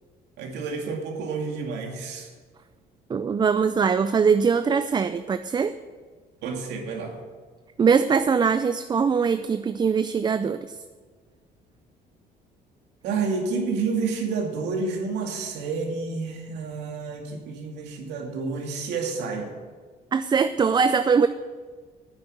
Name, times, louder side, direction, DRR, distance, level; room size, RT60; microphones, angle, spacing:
voice 1, 0.4-2.3 6.4-7.2 13.0-19.5, right 4 dB, 85° right, 1 dB, 2.4 m, -29 dB
voice 2, 3.1-5.7 7.8-10.8 20.1-21.3, right 6 dB, 25° right, 11 dB, 0.4 m, -22 dB
9.7 x 8.3 x 7.9 m, 1.5 s
cardioid pair, 110°, 17 cm